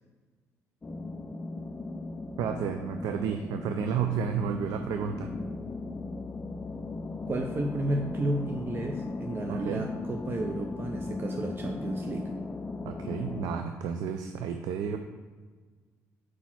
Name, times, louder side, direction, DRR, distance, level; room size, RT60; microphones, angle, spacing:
sound 1, 0.8-13.6, left 3 dB, 20° left, 0.4 m, -37 dB
voice 1, 2.4-5.3 9.5-9.9 12.8-15.0, right 7 dB, 80° right, 6 dB, 0.4 m, -31 dB
voice 2, 7.3-12.3, right 1 dB, 35° right, 3 dB, 0.6 m, -32 dB
4.8 x 4.0 x 5.8 m, 1.5 s
cardioid pair, 80°, 6 cm